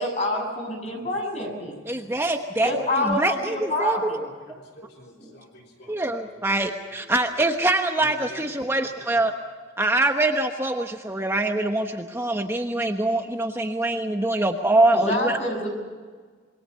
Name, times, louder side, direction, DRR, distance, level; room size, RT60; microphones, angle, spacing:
voice 1, 0.0-1.8 2.6-4.2 5.2-5.3 14.9-15.7, left 1 dB, 35° left, 1 dB, 7.7 m, -27 dB
voice 2, 0.9-2.3 2.5-3.5 4.3-6.2 6.6-7.5 8.0-8.9 9.2-9.3, equal, 55° left, 0 dB, 3.7 m, -50 dB
voice 3, 1.9-2.7 3.0-4.2 5.9-9.3 9.8-15.4, right 2 dB, 15° right, 4 dB, 1.1 m, -24 dB
26.5 x 23.5 x 5.7 m, 1.5 s
head